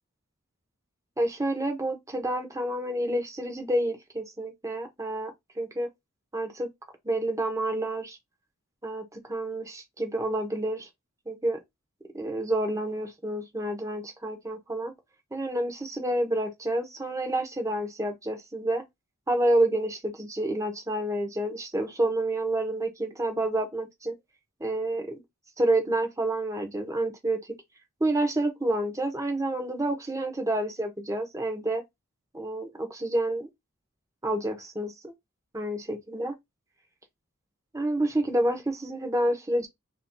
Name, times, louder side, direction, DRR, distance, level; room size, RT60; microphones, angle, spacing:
voice 1, 1.2-5.9 6.3-6.7 7.0-8.2 8.8-10.9 11.3-11.6 12.1-14.9 15.3-18.8 19.3-24.1 24.6-25.1 25.6-27.4 28.0-31.8 32.3-33.5 34.2-35.1 35.5-36.3 37.7-39.7, right 1 dB, 15° right, 0.8 m, -29 dB
3.1 x 2.6 x 4.3 m
head